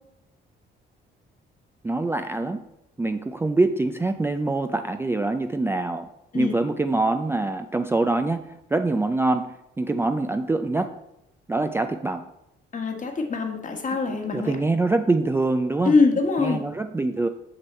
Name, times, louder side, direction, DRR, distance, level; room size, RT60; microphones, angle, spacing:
voice 1, 1.8-2.6 3.0-6.1 6.3-11.0 11.5-12.2 14.1-15.9 16.4-17.3, right 2 dB, 10° right, 7 dB, 0.4 m, -24 dB
voice 2, 12.7-14.6 15.8-16.6, left 4 dB, 40° left, 3 dB, 1.4 m, -23 dB
6.4 x 6.0 x 4.2 m, 0.86 s
cardioid pair, 90°, 20 cm